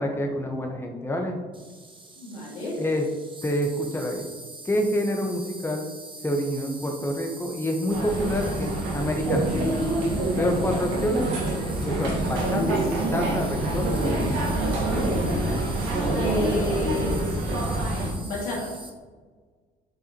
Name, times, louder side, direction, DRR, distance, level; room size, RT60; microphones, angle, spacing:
voice 1, 0.0-1.4 2.8-3.1 3.4-4.3 4.6-5.9 6.2-9.8 10.4-11.3 11.8-12.8 13.1-14.4, equal, 10° left, 2 dB, 1.0 m, -27 dB
Insect, 1.5-18.9, right 3 dB, 25° right, 1.2 m, -43 dB
voice 2, 2.2-2.8 16.1-17.2 18.2-18.7, equal, 85° left, -4 dB, 1.8 m, -30 dB
sound 1, 7.9-18.1, right 1 dB, 80° right, 1.5 m, -26 dB
7.7 x 4.7 x 2.9 m, 1.5 s
hypercardioid pair, 60°, 20 cm